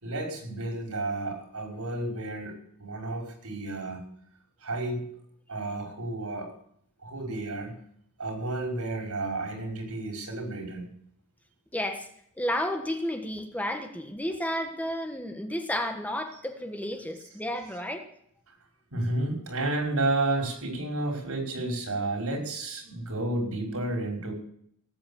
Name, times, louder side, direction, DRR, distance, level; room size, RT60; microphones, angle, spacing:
voice 1, 0.0-4.0 4.6-5.1 5.5-6.5 7.0-7.7 8.2-10.9 18.5-18.6 18.9-24.3, right 2 dB, 90° right, 2 dB, 5.4 m, -31 dB
voice 2, 11.7-12.1 12.4-18.1, left 1 dB, 5° left, 6 dB, 1.4 m, -32 dB
18.5 x 8.7 x 7.2 m, 0.67 s
head